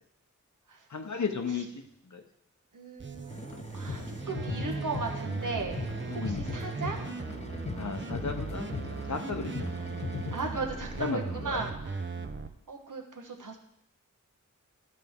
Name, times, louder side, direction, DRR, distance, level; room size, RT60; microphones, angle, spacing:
voice 1, 0.9-2.2 6.1-6.5 7.8-8.8 9.1-9.8 11.0-11.6 12.2-12.3, left 4 dB, 65° left, 5 dB, 0.9 m, -35 dB
voice 2, 2.7-3.3 3.7-4.0 4.3-5.8 6.1-7.0 10.3-12.0 12.7-13.6, right 3 dB, 80° right, 2 dB, 1.2 m, -36 dB
sound 1, 3.0-12.5, right 4 dB, 40° right, 0.6 m, -38 dB
sound 2, 3.2-12.0, left 2 dB, 20° left, 0.8 m, -44 dB
sound 3, 3.5-3.6 3.9-4.1 4.4-5.5 5.8-6.0 6.2-7.4 7.7-9.3 9.5-9.8 10.0-10.6, left 6 dB, 45° left, 0.4 m, -38 dB
12.0 x 4.6 x 3.6 m, 0.75 s
wide cardioid pair, 60°, 31 cm